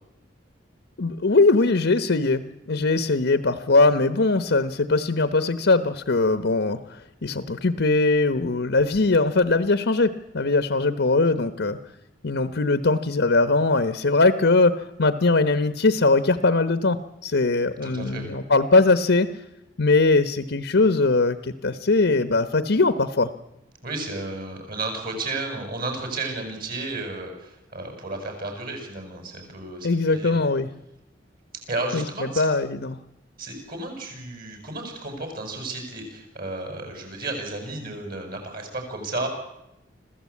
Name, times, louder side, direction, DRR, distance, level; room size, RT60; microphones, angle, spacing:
voice 1, 1.0-2.4 2.7-11.8 12.2-19.3 19.8-23.3 29.8-30.7 31.9-32.0 32.4-33.0, left 3 dB, 65° left, 12 dB, 1.0 m, -21 dB
voice 2, 17.8-18.4 23.8-30.3 31.7-32.5 33.4-39.3, right 2 dB, 50° right, 4 dB, 6.6 m, -33 dB
26.0 x 15.5 x 8.4 m, 0.88 s
head